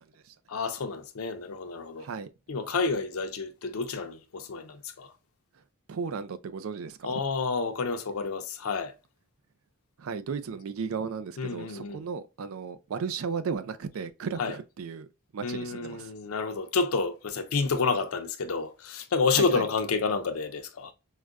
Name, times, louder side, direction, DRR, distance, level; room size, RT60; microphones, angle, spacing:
voice 1, 0.5-2.1 2.5-5.1 7.0-8.9 10.5-10.6 11.4-12.0 14.3-14.6 15.4-20.9, left 4 dB, 90° left, 0.6 m, -29 dB
voice 2, 2.0-2.3 5.9-7.2 10.0-15.1 15.3-16.1 19.3-19.7, right 5 dB, 85° right, 0.4 m, -35 dB
4.7 x 2.2 x 2.4 m
head